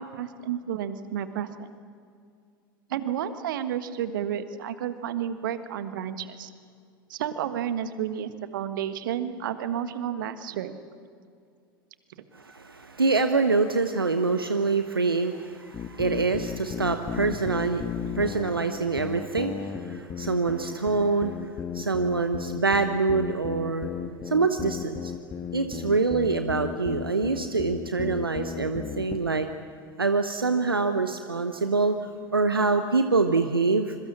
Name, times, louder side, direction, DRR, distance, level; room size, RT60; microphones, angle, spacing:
voice 1, 0.0-1.7 2.9-6.5 7.1-10.8, right 9 dB, 65° right, 11 dB, 1.5 m, -31 dB
voice 2, 12.3-23.9 24.2-25.1 25.5-29.5 30.0-33.9, right 4 dB, 85° right, 8 dB, 0.9 m, -25 dB
sound 1, 15.7-29.3, left 7 dB, 30° left, 1.5 m, -35 dB
26.0 x 22.5 x 7.3 m, 2.3 s
figure-of-eight pair, 80°, 12 cm